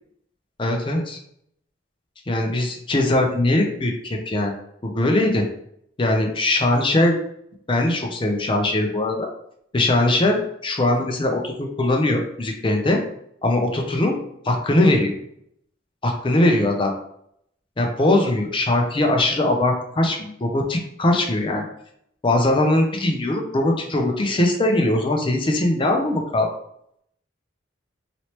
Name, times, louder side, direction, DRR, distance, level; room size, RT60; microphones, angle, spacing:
voice 1, 0.6-1.2 2.3-4.5 4.8-5.4 6.0-7.2 7.7-9.3 9.7-13.0 13.4-14.1 14.4-15.1 16.0-16.9 17.8-21.7 22.2-26.5, left 1 dB, 25° left, 2 dB, 0.5 m, -21 dB
3.0 x 2.9 x 2.9 m, 0.72 s
head